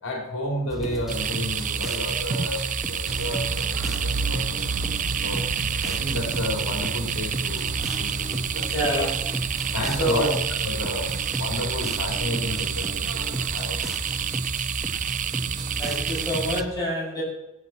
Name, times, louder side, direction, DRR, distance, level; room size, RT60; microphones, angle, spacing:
voice 1, 0.0-5.5 5.8-9.1 9.7-14.3, left 1 dB, 60° left, 1 dB, 3.1 m, -32 dB
sound 1, 0.7-16.7, equal, ahead, 1.3 m, -33 dB
sound 2, 1.1-16.6, right 9 dB, 35° right, 0.3 m, -29 dB
sound 3, 3.1-13.6, right 3 dB, 85° right, 0.6 m, -36 dB
voice 2, 8.6-9.2 10.0-10.3 15.8-17.2, equal, 15° left, -6 dB, 6.2 m, -27 dB
18.5 x 8.9 x 4.3 m, 0.94 s
head